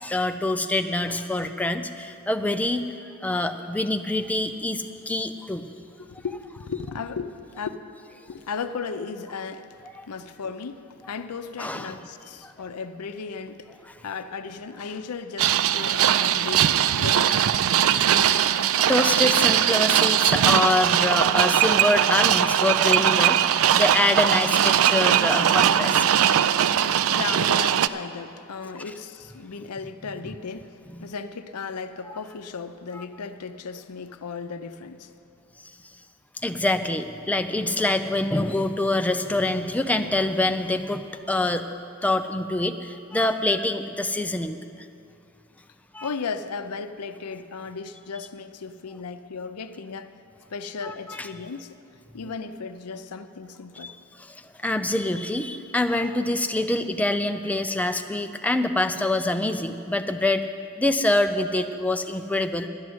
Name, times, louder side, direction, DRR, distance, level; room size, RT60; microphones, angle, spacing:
voice 1, 0.0-2.9 3.2-5.7 10.0-10.1 11.6-11.9 12.4-12.5 18.3-26.3 26.8-26.9 30.9-31.0 32.1-32.2 32.9-33.0 36.4-41.7 42.0-44.6 45.9-46.1 50.8-51.3 53.8-53.9 54.2-60.4 60.8-62.7, left 2 dB, 5° left, 7 dB, 0.4 m, -25 dB
voice 2, 6.0-7.7 8.3-9.7 10.1-17.7 18.3-18.7 26.8-35.1 46.0-50.1 50.5-51.8 52.1-53.9, left 5 dB, 90° left, 10 dB, 0.6 m, -36 dB
sound 1, 15.4-27.9, right 10 dB, 65° right, 0.3 m, -20 dB
12.0 x 6.3 x 9.5 m, 2.6 s
head